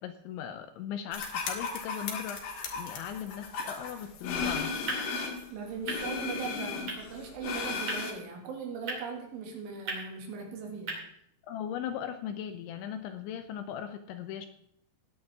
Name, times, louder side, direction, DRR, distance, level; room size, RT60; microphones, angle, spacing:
voice 1, 0.0-4.7 11.5-14.5, left 9 dB, 80° left, 8 dB, 2.8 m, -38 dB
sound 1, 1.1-5.5 5.9-8.1, left 5 dB, 60° left, 2.5 m, -35 dB
sound 2, 4.3-11.0, right 2 dB, 35° right, 2.7 m, -42 dB
voice 2, 5.5-11.0, right 5 dB, 75° right, 2 dB, 4.5 m, -39 dB
17.5 x 9.7 x 3.5 m, 0.71 s
omnidirectional pair, 5.9 m